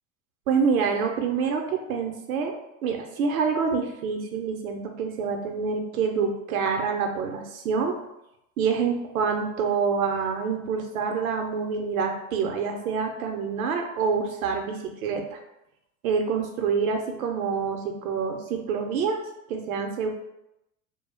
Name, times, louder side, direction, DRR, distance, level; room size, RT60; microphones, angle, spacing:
voice 1, 0.5-2.5 2.8-7.9 8.6-15.4 16.0-19.2 19.5-20.1, right 5 dB, 85° right, 3 dB, 0.6 m, -27 dB
2.3 x 2.0 x 3.3 m, 0.87 s
hypercardioid pair, 80°, 41 cm